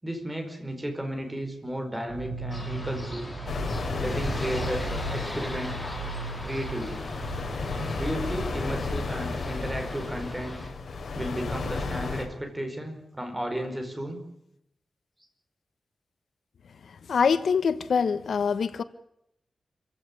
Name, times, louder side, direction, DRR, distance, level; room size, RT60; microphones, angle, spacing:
voice 1, 0.0-3.2 4.0-5.8 6.4-7.0 7.9-10.6 11.1-14.2, right 1 dB, 10° right, 4 dB, 4.9 m, -33 dB
sound 1, 2.1-7.9, right 3 dB, 65° right, 4.3 m, -37 dB
sound 2, 2.5-10.7, left 1 dB, 15° left, 4.4 m, -40 dB
sound 3, 3.5-12.3, left 4 dB, 65° left, 4.6 m, -33 dB
voice 2, 17.1-18.8, left 6 dB, 80° left, 13 dB, 1.1 m, -24 dB
27.0 x 16.0 x 9.7 m, 0.79 s
wide cardioid pair, 180°, 0 cm